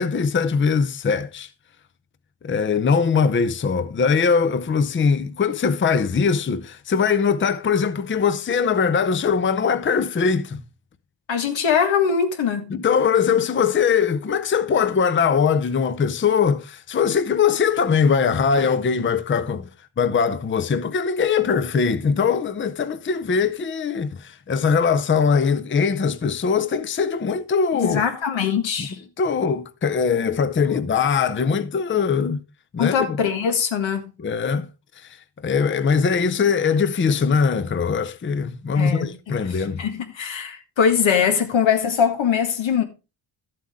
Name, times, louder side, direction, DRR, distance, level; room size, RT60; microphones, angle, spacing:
voice 1, 0.0-1.5 2.4-10.6 12.7-19.7 20.0-28.1 28.8-28.9 29.2-32.4 32.7-33.2 34.2-34.7 35.0-35.1 35.4-39.8, left 6 dB, 25° left, 0.6 m, -21 dB
voice 2, 11.3-12.7 27.8-29.0 32.8-34.1 38.8-42.8, left 7 dB, 85° left, 1.8 m, -22 dB
12.0 x 7.7 x 3.6 m
wide cardioid pair, 105°, 44 cm